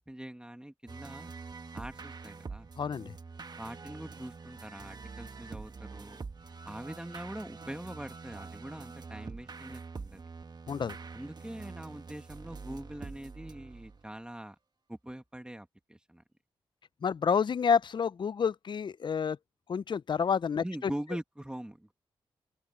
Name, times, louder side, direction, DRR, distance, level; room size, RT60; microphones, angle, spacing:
voice 1, 0.0-1.3 1.7-2.7 3.6-6.2 6.6-10.2 11.1-14.6 14.9-16.2 20.6-21.9, right 1 dB, 10° right, 1.9 m, -43 dB
sound 1, 0.9-14.2, right 4 dB, 45° right, 1.4 m, -45 dB
voice 2, 2.8-3.1 10.7-11.0 17.0-19.4 19.7-20.9, left 6 dB, 50° left, 0.5 m, -29 dB
open air
cardioid pair, 65°, 10 cm